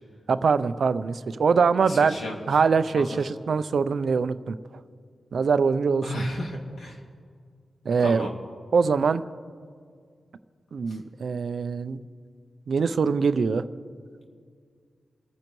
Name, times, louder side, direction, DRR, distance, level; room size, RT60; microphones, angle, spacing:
voice 1, 0.3-2.2 2.5-4.5 5.3-6.2 7.9-8.3 8.7-9.2 10.7-12.0 12.7-13.6, right 5 dB, 65° right, 12 dB, 0.5 m, -23 dB
voice 2, 1.8-2.4 2.9-3.2 6.0-7.0 8.0-8.3 10.9-11.0, left 1 dB, 70° left, 0 dB, 2.3 m, -33 dB
29.0 x 9.7 x 3.1 m, 2.1 s
wide cardioid pair, 105°, 0 cm